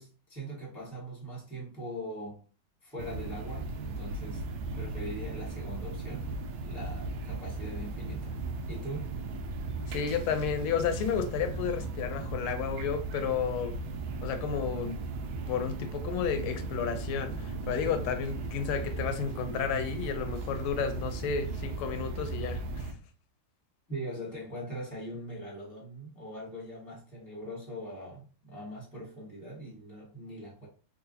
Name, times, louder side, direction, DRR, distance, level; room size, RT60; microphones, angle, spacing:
voice 1, 0.0-2.4 2.8-4.4 4.7-6.3 6.6-8.4 8.7-9.1 23.9-30.7, right 1 dB, ahead, 1.1 m, -41 dB
sound 1, 3.0-22.9, right 3 dB, 75° right, 1.3 m, -37 dB
voice 2, 9.9-13.8 14.2-15.0 15.5-22.9, left 7 dB, 85° left, 1.5 m, -32 dB
3.8 x 2.6 x 2.6 m
omnidirectional pair, 2.3 m